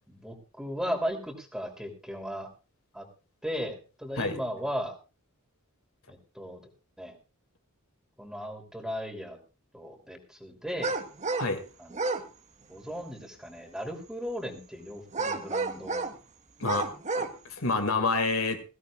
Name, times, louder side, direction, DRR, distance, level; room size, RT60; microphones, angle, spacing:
voice 1, 0.1-2.5 2.9-3.1 3.4-5.0 6.1-6.6 7.0-7.2 8.2-9.4 9.7-11.0 11.8-12.0 12.7-16.0, equal, 5° right, 3 dB, 3.1 m, -36 dB
sound 1, 10.8-11.5 11.9-12.2 15.1-16.2 16.6-17.3, right 3 dB, 35° right, 1.3 m, -31 dB
voice 2, 16.6-16.9 17.2-18.6, left 3 dB, 70° left, 7 dB, 2.2 m, -28 dB
21.0 x 16.5 x 2.4 m, 0.32 s
head